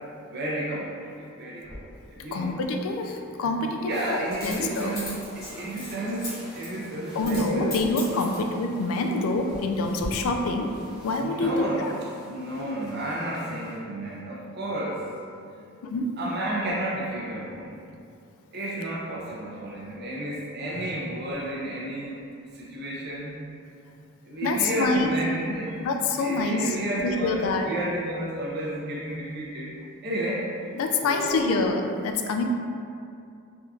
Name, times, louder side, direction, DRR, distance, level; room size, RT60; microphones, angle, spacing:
voice 1, 0.3-0.9 1.2-1.8 2.1-2.5 3.4-3.5 3.8-7.8 11.2-11.8 12.2-15.0 15.5-15.6 16.2-17.8 18.5-22.2 22.5-23.4 24.2-25.7 26.2-29.7 30.0-30.5 31.0-31.6, right 1 dB, 50° right, -6 dB, 0.5 m, -32 dB
Coin (dropping), 1.7-1.8 4.3-6.3 6.6-6.8 7.2-7.5 7.7-8.5 9.1-9.7 10.0-10.1, left 2 dB, 45° left, 1.1 m, -38 dB
voice 2, 2.3-5.0 7.1-10.7 11.0-11.9 15.8-16.1 20.7-20.8 24.4-25.1 25.8-26.8 27.0-27.7 30.7-32.4, left 3 dB, 80° left, 4 dB, 0.3 m, -26 dB
sound 1, 3.9-13.8, equal, 5° right, 0.6 m, -47 dB
3.4 x 2.6 x 2.3 m, 2.4 s
head